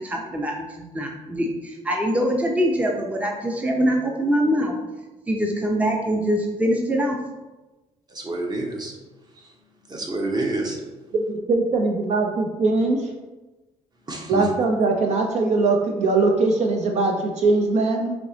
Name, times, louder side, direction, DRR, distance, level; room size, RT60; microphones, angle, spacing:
voice 1, 0.0-4.8 5.3-7.2, equal, 10° right, 1 dB, 0.6 m, -23 dB
voice 2, 8.1-8.9 9.9-10.8 14.1-14.5, right 2 dB, 30° right, 1 dB, 1.0 m, -28 dB
voice 3, 11.1-13.1 14.3-18.2, right 3 dB, 60° right, 3 dB, 0.6 m, -21 dB
5.1 x 2.9 x 3.2 m, 1.1 s
cardioid pair, 90°, 13 cm